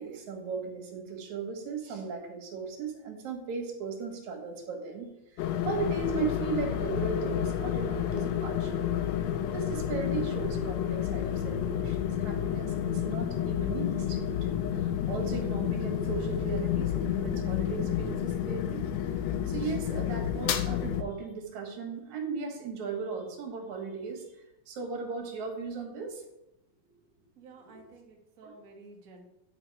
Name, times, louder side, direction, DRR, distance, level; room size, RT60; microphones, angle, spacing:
voice 1, 0.0-8.8 9.5-24.3 24.7-26.2 28.4-28.5, right 5 dB, 75° right, 3 dB, 2.7 m, -37 dB
sound 1, 5.4-21.0, left 10 dB, 80° left, 1.7 m, -30 dB
voice 2, 26.8-29.2, right 3 dB, 50° right, 1 dB, 1.1 m, -53 dB
9.8 x 4.5 x 4.6 m, 0.90 s
omnidirectional pair, 3.4 m